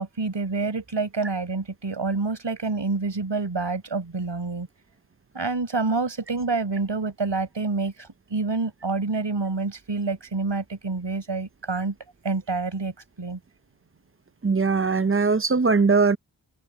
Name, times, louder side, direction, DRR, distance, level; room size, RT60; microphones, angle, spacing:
voice 1, 0.0-4.7 5.3-11.9 12.2-13.4, right 3 dB, 75° right, 5.3 m, -27 dB
voice 2, 14.4-16.2, right 4 dB, 30° right, 0.6 m, -20 dB
open air
wide cardioid pair, 50°, 44 cm